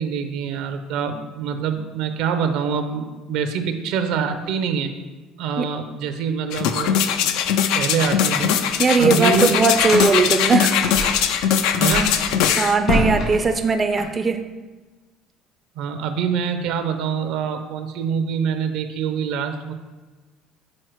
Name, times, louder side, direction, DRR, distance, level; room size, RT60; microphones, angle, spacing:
voice 1, 0.0-4.9 5.4-7.0 7.7-8.6 9.0-9.7 11.8-12.1 15.8-19.7, right 6 dB, 75° right, 8 dB, 0.6 m, -25 dB
sound 1, 6.5-12.8 13.3-13.4, left 8 dB, 80° left, 0.4 m, -20 dB
sound 2, 8.4-8.5 8.9-9.0 9.5-11.3 11.6-14.0, left 1 dB, 60° left, 2.1 m, -26 dB
voice 2, 8.8-10.8 12.6-14.4, right 4 dB, 30° right, 7 dB, 0.4 m, -19 dB
6.4 x 4.4 x 4.5 m, 1.3 s
supercardioid pair, 100°, 0 cm